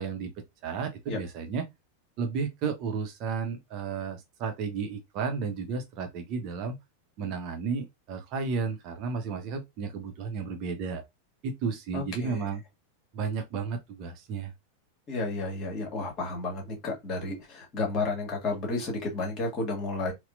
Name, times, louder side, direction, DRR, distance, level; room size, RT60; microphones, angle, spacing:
voice 1, 0.0-1.6 2.2-6.8 7.2-11.0 11.4-12.6 13.1-14.5, right 5 dB, 40° right, 0.7 m, -33 dB
voice 2, 11.9-12.4 15.1-20.1, left 3 dB, 30° left, 1.6 m, -32 dB
4.1 x 2.2 x 2.5 m
figure-of-eight pair, 90°, 0 cm